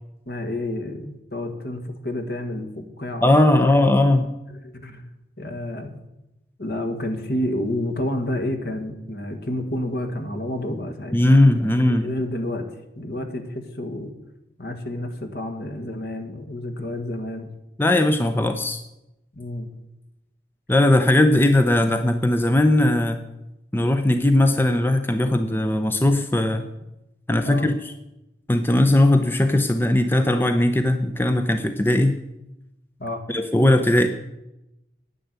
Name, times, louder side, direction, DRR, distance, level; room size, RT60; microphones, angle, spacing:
voice 1, 0.3-3.3 4.6-5.1 5.4-6.0 6.6-11.2 11.9-12.7 13.0-14.1 14.6-17.5 19.3-19.7 27.4-27.7 33.0-33.2, left 1 dB, 60° left, 6 dB, 1.7 m, -29 dB
voice 2, 3.2-4.3 11.1-12.1 17.8-18.8 20.7-23.2 23.7-26.6 27.3-27.9 28.5-32.2 33.3-34.1, left 1 dB, 10° left, 8 dB, 0.6 m, -18 dB
10.0 x 9.2 x 8.1 m, 0.93 s
head